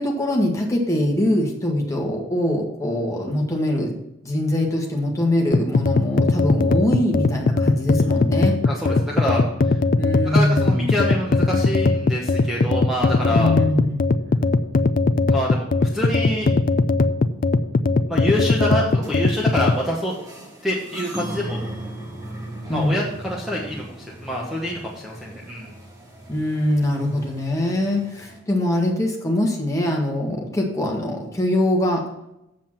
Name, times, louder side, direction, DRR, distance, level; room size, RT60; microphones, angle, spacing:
voice 1, 0.0-4.0 4.2-8.6 10.0-11.0 13.3-14.0 22.7-23.0 26.3-32.0, left 1 dB, 15° left, 0 dB, 1.6 m, -23 dB
sound 1, 5.5-19.8, left 3 dB, 45° left, 0.4 m, -19 dB
voice 2, 8.6-9.4 9.7-9.8 10.3-13.5 15.3-16.5 18.1-20.2 20.6-21.6 22.7-23.8 24.2-25.7, left 1 dB, ahead, -4 dB, 1.2 m, -26 dB
sound 2, 19.0-28.4, right 1 dB, 20° right, 1.8 m, -38 dB
7.6 x 7.4 x 6.0 m, 0.86 s
head